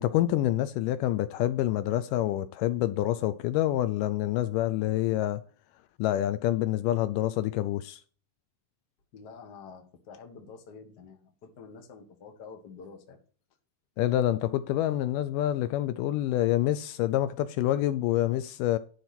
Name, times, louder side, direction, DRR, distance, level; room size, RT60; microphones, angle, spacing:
voice 1, 0.0-5.4 6.0-8.0 14.0-18.8, left 13 dB, 80° left, 2.1 m, -27 dB
voice 2, 9.1-13.2, left 5 dB, 40° left, 1.5 m, -48 dB
12.0 x 4.7 x 5.9 m
omnidirectional pair, 3.9 m